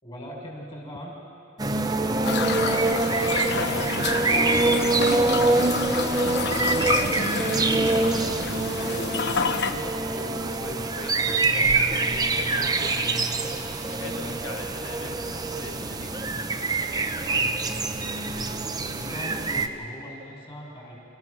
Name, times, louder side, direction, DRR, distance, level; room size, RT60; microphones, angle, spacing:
voice 1, 0.0-1.1 5.7-6.0 6.5-6.8 18.9-21.0, equal, 25° left, -3 dB, 5.5 m, -40 dB
sound 1, 1.6-19.7, right 3 dB, 20° right, 0.7 m, -25 dB
sound 2, 2.2-9.7, left 5 dB, 55° left, 0.9 m, -29 dB
voice 2, 3.1-4.6 5.8-6.8 7.1-8.8 9.5-13.1 13.8-16.7, left 3 dB, 80° left, 3 dB, 1.1 m, -41 dB
29.0 x 15.0 x 6.4 m, 2.7 s
head